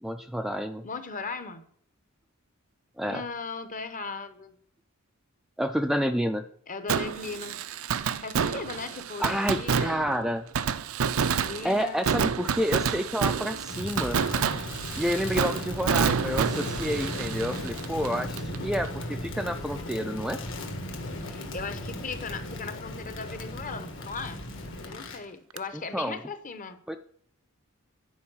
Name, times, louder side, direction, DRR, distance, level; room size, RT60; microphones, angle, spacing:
voice 1, 0.0-0.9 3.0-3.2 5.6-6.4 9.2-10.5 11.6-14.2 15.0-20.4 25.7-26.2 26.9-27.0, equal, ahead, 7 dB, 0.3 m, -29 dB
voice 2, 0.8-1.6 3.0-4.5 6.7-7.6 8.2-10.1 11.2-12.0 21.2-24.4 24.9-26.8, left 4 dB, 40° left, 10 dB, 0.9 m, -38 dB
Fireworks, 6.9-18.6 18.8-18.9 25.6-25.7, right 6 dB, 70° right, 0.5 m, -29 dB
Crackle, 13.7-25.2, left 1 dB, 65° left, 1.7 m, -36 dB
10.5 x 4.6 x 6.2 m, 0.64 s
head